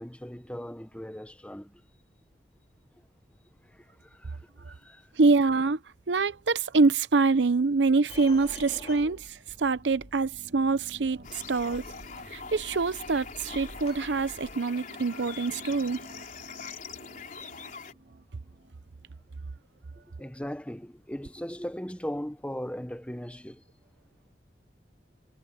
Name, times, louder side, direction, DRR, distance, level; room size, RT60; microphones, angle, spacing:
voice 1, 0.0-1.8 3.6-5.1 9.0-9.1 15.2-15.3 20.2-23.6, equal, 5° left, 1.1 m, -39 dB
voice 2, 5.2-5.8 6.1-11.9 12.3-16.0, right 3 dB, 90° right, 0.7 m, -25 dB
sound 1, 8.1-14.6, left 2 dB, 35° left, 2.6 m, -48 dB
sound 2, 10.2-19.2, right 2 dB, 65° right, 3.0 m, -53 dB
sound 3, 11.2-17.9, left 5 dB, 50° left, 4.0 m, -43 dB
head